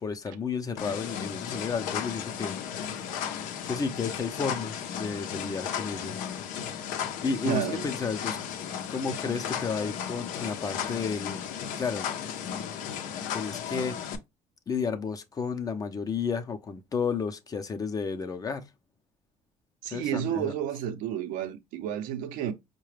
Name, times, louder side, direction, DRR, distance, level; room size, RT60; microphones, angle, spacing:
voice 1, 0.0-2.5 2.9-3.2 3.6-6.2 6.7-6.8 7.2-8.4 8.9-11.4 11.8-12.1 13.3-14.0 14.7-18.7 19.9-20.5, left 5 dB, 25° left, 0.6 m, -32 dB
sound 1, 0.8-14.2, left 8 dB, 80° left, 0.6 m, -35 dB
voice 2, 7.4-7.9 19.8-22.5, right 10 dB, 85° right, 0.7 m, -31 dB
4.7 x 2.2 x 3.2 m
cardioid pair, 120°, 13 cm